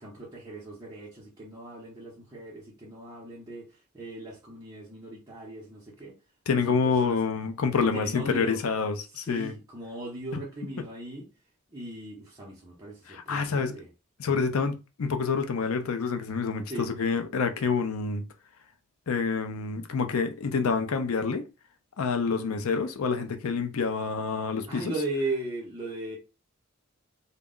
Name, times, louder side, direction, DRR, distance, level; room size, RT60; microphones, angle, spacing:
voice 1, 0.0-6.2 6.7-7.2 7.8-8.6 9.2-11.3 11.7-13.9 16.7-16.9 22.3-22.4 24.7-26.2, right 2 dB, 15° right, 0.6 m, -38 dB
voice 2, 6.5-9.5 13.1-13.8 14.2-18.2 19.1-21.4 22.0-24.9, left 5 dB, 85° left, 0.5 m, -27 dB
2.2 x 2.0 x 3.6 m
head